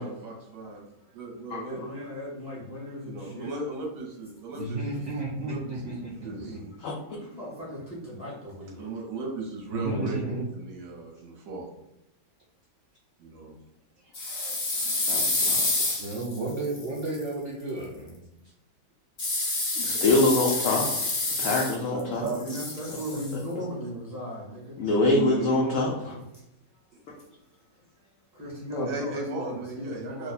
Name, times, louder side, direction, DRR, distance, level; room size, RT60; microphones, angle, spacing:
voice 1, 0.0-0.8 1.1-1.8 3.0-5.0 5.4-5.9 6.2-6.6 8.8-10.2 10.5-11.7 13.2-13.6 21.9-22.6 25.0-26.0 28.8-30.3, right 3 dB, 60° right, 0 dB, 1.1 m, -36 dB
voice 2, 1.6-3.5 6.2-6.9 7.3-9.0 22.3-24.8 26.0-26.2 26.7-26.8 28.0-28.1 28.3-30.3, equal, 30° right, -8 dB, 0.8 m, -38 dB
voice 3, 4.5-6.4 9.7-10.5 14.0-14.1 14.9-15.0 16.0-18.5, right 2 dB, 75° right, -3 dB, 0.6 m, -33 dB
sound 1, 14.1-17.2 19.2-22.0 22.3-23.3, left 2 dB, 45° left, 0.7 m, -28 dB
voice 4, 15.1-15.9 19.8-20.9 21.4-22.3 24.8-26.1 28.7-28.9, left 2 dB, 80° left, -1 dB, 0.7 m, -25 dB
3.0 x 2.1 x 4.0 m, 0.86 s
omnidirectional pair, 1.9 m